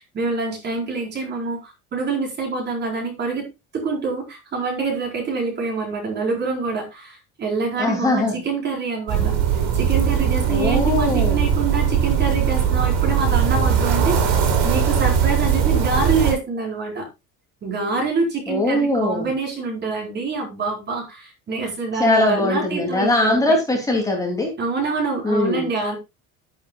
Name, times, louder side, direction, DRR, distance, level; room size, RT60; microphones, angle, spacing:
voice 1, 0.0-3.5 3.7-17.1 17.6-23.6 24.6-26.0, right 4 dB, 30° right, 1 dB, 4.6 m, -26 dB
voice 2, 7.8-8.4 10.5-11.4 18.5-19.3 22.0-24.5 25.2-25.6, left 2 dB, 10° left, 0 dB, 2.9 m, -21 dB
sound 1, 9.1-16.3, right 8 dB, 70° right, 6.0 m, -20 dB
11.5 x 11.0 x 2.4 m, 0.24 s
cardioid pair, 175°, 34 cm